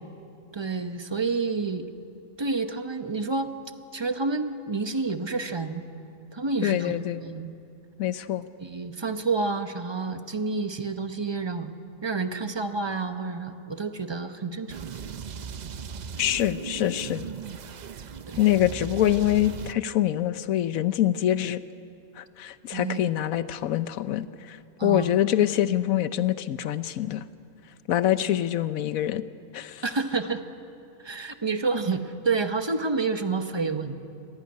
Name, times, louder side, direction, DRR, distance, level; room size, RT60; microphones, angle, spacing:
voice 1, 0.5-1.9 2.4-3.5 3.9-5.8 6.3-7.5 8.6-11.7 12.0-14.9 18.3-18.4 22.7-23.0 24.8-25.2 29.8-30.4 31.0-34.0, right 4 dB, 25° right, 8 dB, 0.7 m, -29 dB
voice 2, 6.6-7.2 8.0-8.5 16.2-17.2 18.4-21.6 22.2-27.2 27.9-29.2 29.5-29.8, left 12 dB, 70° left, 14 dB, 1.1 m, -25 dB
sound 1, 14.7-19.7, right 6 dB, 85° right, 0.3 m, -37 dB
24.0 x 16.0 x 9.6 m, 2.7 s
omnidirectional pair, 1.6 m